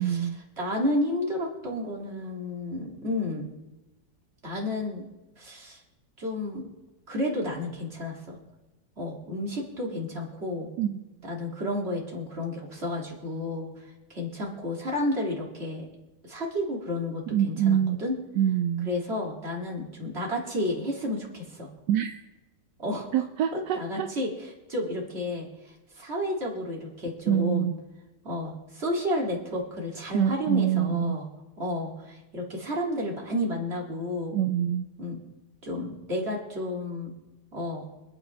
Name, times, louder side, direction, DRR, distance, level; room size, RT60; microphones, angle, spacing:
voice 1, 0.0-0.4 10.8-11.0 17.3-18.0 18.4-18.9 21.9-22.2 23.1-24.1 27.3-27.7 30.1-31.2 34.3-34.9, right 10 dB, 80° right, 7 dB, 1.3 m, -25 dB
voice 2, 0.6-3.5 4.4-5.1 5.4-5.8 6.2-6.6 7.1-8.4 9.0-10.7 11.2-15.9 16.2-18.1 18.8-21.7 22.8-23.2 23.5-27.7 28.2-31.3 31.6-34.4 35.0-35.2 35.6-37.1 37.5-37.9, left 1 dB, 35° right, -2 dB, 3.1 m, -31 dB
26.0 x 8.9 x 3.5 m, 1.1 s
omnidirectional pair, 1.8 m